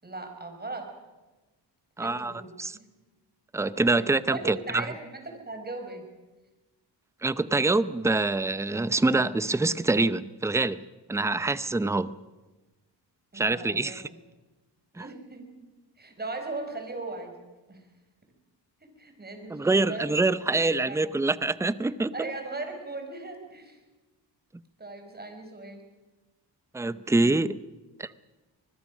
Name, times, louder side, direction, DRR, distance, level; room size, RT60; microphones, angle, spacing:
voice 1, 0.0-0.9 2.0-2.5 4.3-6.0 13.3-14.2 14.9-15.5 16.0-17.3 17.7-17.8 18.8-20.1 20.8-21.1 22.1-23.8 24.8-25.8, right 2 dB, 25° right, 5 dB, 5.0 m, -38 dB
voice 2, 2.0-2.3 2.6-2.8 3.5-4.8 7.2-10.8 11.1-12.1 13.3-14.0 15.0-15.1 19.5-22.1 26.7-27.6 28.0-28.1, right 3 dB, 5° right, 16 dB, 0.6 m, -25 dB
25.0 x 21.0 x 6.2 m, 1.2 s
cardioid pair, 100°, 41 cm